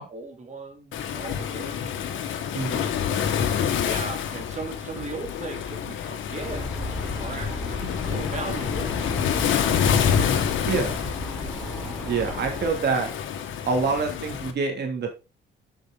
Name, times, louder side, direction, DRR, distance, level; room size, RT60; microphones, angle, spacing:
voice 1, 0.0-1.9 3.0-3.3 3.8-6.7 7.1-10.5, right 3 dB, 35° right, 1 dB, 2.4 m, -38 dB
Waves surf, 0.9-14.5, left 8 dB, 75° left, 1.4 m, -27 dB
voice 2, 2.5-2.9 10.6-11.0 12.0-13.1 13.7-15.1, right 4 dB, 60° right, 3 dB, 2.7 m, -26 dB
sound 1, 6.4-12.7, left 1 dB, ahead, 4.0 m, -35 dB
7.9 x 6.5 x 3.9 m, 0.28 s
cardioid pair, 90°, 20 cm